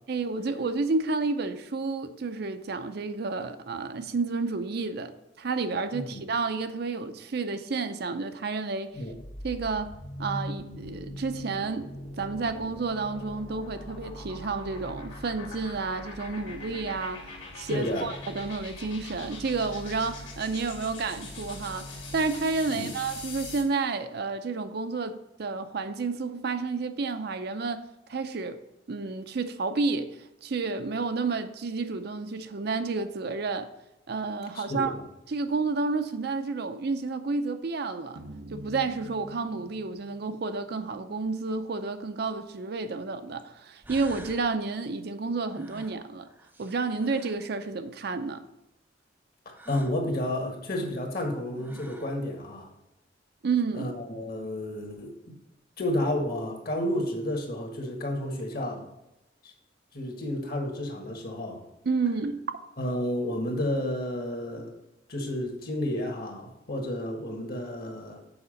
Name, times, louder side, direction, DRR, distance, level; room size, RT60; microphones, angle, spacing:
voice 1, 0.1-5.1 5.4-8.9 9.4-11.9 12.2-21.9 22.1-27.8 28.1-28.6 28.9-30.1 30.4-33.7 34.1-34.9 35.3-38.2 38.5-46.3 46.6-48.4 53.4-53.9 61.9-62.4, right 4 dB, 60° right, 9 dB, 0.5 m, -30 dB
sound 1, 9.1-23.8, left 1 dB, 85° left, 2.2 m, -41 dB
voice 2, 17.7-18.1 22.7-22.9 34.5-35.0 49.4-52.7 53.7-55.4 55.8-58.9 59.4-59.5 59.9-61.6 62.8-64.7 65.1-68.2, left 1 dB, 55° left, 2 dB, 1.6 m, -31 dB
sound 2, 38.2-42.5, right 1 dB, 90° right, 0.8 m, -47 dB
sound 3, 43.4-43.5 43.8-44.5 45.5-47.5 49.5-50.0 51.2-51.3 51.6-52.2, right 1 dB, 10° right, 0.5 m, -47 dB
7.0 x 4.9 x 5.0 m, 0.92 s
head